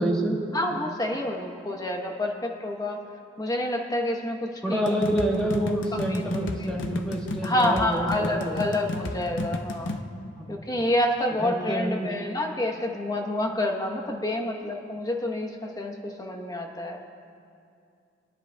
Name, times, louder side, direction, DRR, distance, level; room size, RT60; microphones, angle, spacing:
voice 1, 0.0-0.4 4.6-8.8 10.4-10.5 11.3-12.1, right 1 dB, 5° left, -2 dB, 1.3 m, -28 dB
voice 2, 0.5-3.0 3.4-4.8 5.9-6.3 7.4-9.9 10.5-17.0, left 1 dB, 20° left, 2 dB, 0.9 m, -28 dB
sound 1, 4.9-10.0, left 2 dB, 70° left, 0.6 m, -32 dB
22.0 x 10.0 x 2.3 m, 2.4 s
head